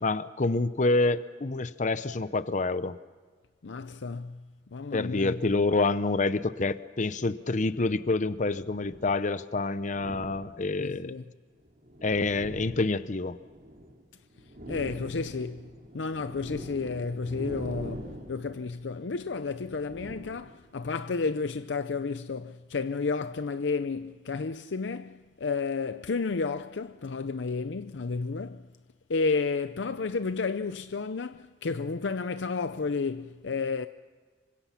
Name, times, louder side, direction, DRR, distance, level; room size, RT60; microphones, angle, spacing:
voice 1, 0.0-3.0 4.9-11.1 12.0-13.4, left 3 dB, 45° left, 0.7 m, -27 dB
voice 2, 3.6-4.4 4.7-5.4 10.8-11.3 14.7-28.7 29.1-33.9, left 4 dB, 80° left, 0.6 m, -32 dB
sound 1, 7.7-9.2 9.8-11.0 11.6-14.0 14.3-20.9, equal, 50° right, 3.8 m, -44 dB
27.0 x 25.0 x 5.8 m
head